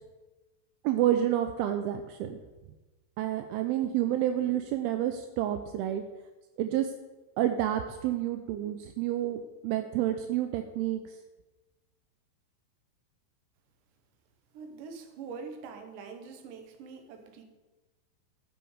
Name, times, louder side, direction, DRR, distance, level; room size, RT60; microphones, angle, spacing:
voice 1, 0.8-2.4 3.2-6.0 6.6-6.9 7.4-11.0, right 12 dB, 85° right, 7 dB, 2.4 m, -29 dB
voice 2, 14.5-17.4, right 5 dB, 70° right, 6 dB, 2.4 m, -44 dB
12.0 x 5.8 x 5.0 m, 1.2 s
omnidirectional pair, 4.6 m